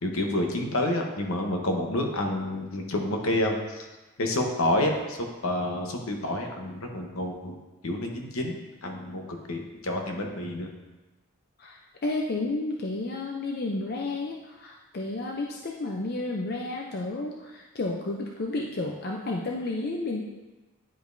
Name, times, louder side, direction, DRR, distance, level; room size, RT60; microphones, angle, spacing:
voice 1, 0.0-3.9 4.2-5.2 5.4-7.6 7.8-8.6 8.8-10.7, left 1 dB, 70° left, 2 dB, 1.0 m, -29 dB
voice 2, 11.6-20.2, left 2 dB, 45° left, 0 dB, 0.5 m, -31 dB
10.0 x 5.1 x 2.6 m, 1.1 s
head